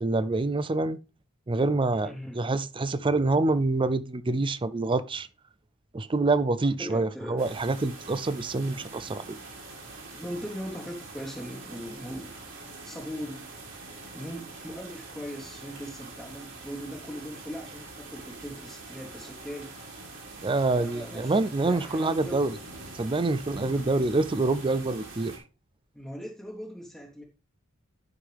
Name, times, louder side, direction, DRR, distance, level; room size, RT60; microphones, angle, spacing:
voice 1, 0.0-1.0 1.5-5.3 5.9-9.4 20.4-22.6 22.9-25.3, right 3 dB, 25° right, 0.4 m, -26 dB
voice 2, 2.0-2.4 6.8-7.4 10.1-12.3 12.8-13.5 14.1-19.7 20.7-22.4 23.7-23.8 25.9-27.2, equal, ahead, 1.3 m, -39 dB
sound 1, 7.4-25.4, right 3 dB, 60° right, 3.0 m, -44 dB
11.5 x 5.6 x 3.4 m
head